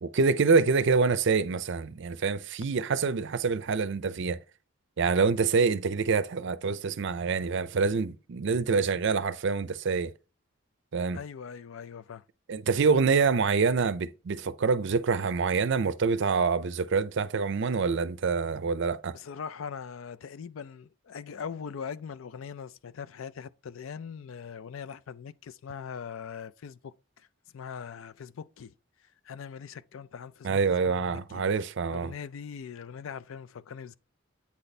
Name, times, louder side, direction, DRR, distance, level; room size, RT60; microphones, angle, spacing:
voice 1, 0.0-4.4 5.0-10.1 10.9-11.2 12.5-19.2 30.4-32.1, right 5 dB, 60° right, 0.5 m, -26 dB
voice 2, 11.1-12.2 19.1-27.3 27.5-28.7 29.2-31.4 31.9-34.0, left 6 dB, 70° left, 0.4 m, -41 dB
8.5 x 4.1 x 3.3 m
head